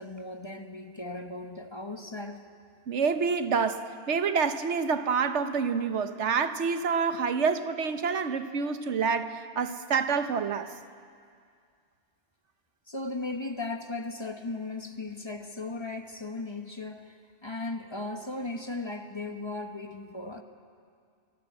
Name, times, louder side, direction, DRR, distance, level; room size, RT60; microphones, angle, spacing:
voice 1, 0.0-2.4 12.9-20.4, left 2 dB, 25° left, 1.2 m, -37 dB
voice 2, 2.9-10.7, right 5 dB, 85° right, 1.3 m, -27 dB
25.5 x 17.5 x 8.6 m
omnidirectional pair, 1.2 m